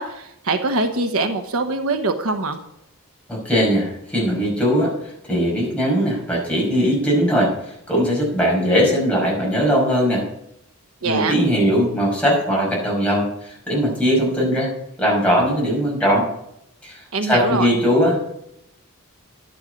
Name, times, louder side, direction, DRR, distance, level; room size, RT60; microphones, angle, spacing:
voice 1, 0.0-2.6 11.0-11.3 17.1-17.7, right 3 dB, 70° right, 6 dB, 1.1 m, -23 dB
voice 2, 3.3-4.9 5.3-10.2 11.0-14.7 15.0-16.3 16.8-18.2, equal, 5° left, -4 dB, 5.7 m, -20 dB
11.0 x 10.5 x 5.2 m, 0.79 s
head